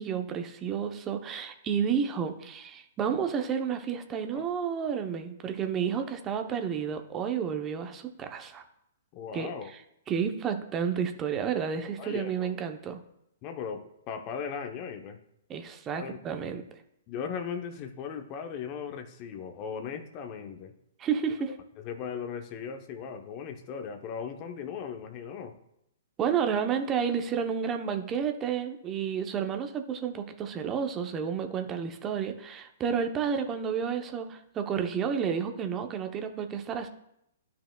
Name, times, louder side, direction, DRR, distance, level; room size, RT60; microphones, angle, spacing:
voice 1, 0.0-8.6 9.3-9.8 10.1-13.0 15.5-16.6 21.0-21.5 26.2-36.9, right 7 dB, 25° right, 6 dB, 0.8 m, -31 dB
voice 2, 9.1-9.7 12.0-12.5 13.4-15.2 15.9-16.2 17.1-20.7 21.8-25.6, left 6 dB, 35° left, 7 dB, 0.8 m, -38 dB
12.0 x 5.6 x 2.3 m, 0.79 s
figure-of-eight pair, 120°, 0 cm